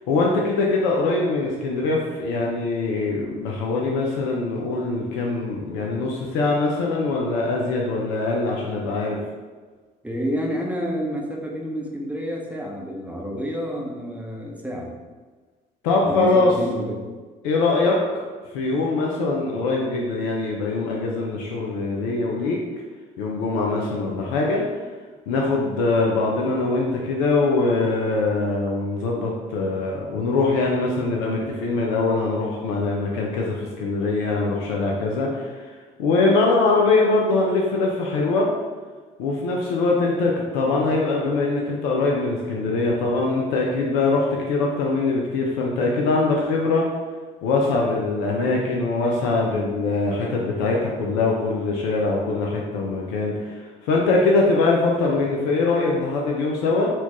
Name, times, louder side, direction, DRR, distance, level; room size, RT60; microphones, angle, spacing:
voice 1, 0.1-9.2 15.8-16.5 17.4-18.0 18.5-22.6 23.2-24.6 25.3-35.6 36.0-38.5 39.2-46.9 47.4-56.9, left 3 dB, 75° left, -1 dB, 0.5 m, -22 dB
voice 2, 10.0-14.9 16.0-17.0, equal, 5° right, -1 dB, 0.7 m, -29 dB
4.2 x 2.4 x 2.9 m, 1.4 s
hypercardioid pair, 55°, 21 cm